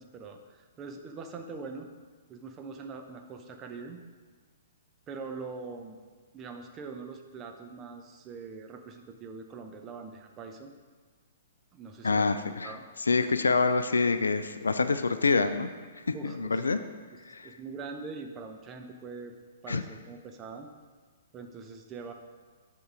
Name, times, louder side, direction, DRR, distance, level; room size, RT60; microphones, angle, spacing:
voice 1, 0.0-1.9 2.3-4.0 5.1-6.0 6.3-10.7 11.7-12.9 16.1-16.6 17.1-19.3 19.6-20.7 21.3-22.1, right 4 dB, 20° right, 4 dB, 0.7 m, -43 dB
voice 2, 12.0-12.7 13.1-15.7 16.2-16.8 17.3-17.5 19.7-19.8, left 4 dB, 70° left, 10 dB, 0.4 m, -26 dB
7.8 x 3.8 x 4.9 m, 1.5 s
figure-of-eight pair, 115°, 0 cm